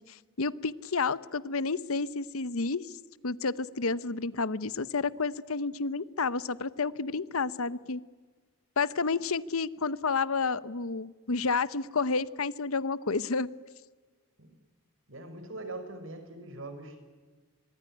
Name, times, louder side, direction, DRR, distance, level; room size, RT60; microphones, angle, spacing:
voice 1, 0.0-2.9 3.2-8.0 8.8-13.5, left 4 dB, 70° left, 17 dB, 0.9 m, -30 dB
voice 2, 15.1-17.0, right 2 dB, 60° right, 9 dB, 5.2 m, -42 dB
25.5 x 22.5 x 9.8 m, 1.4 s
head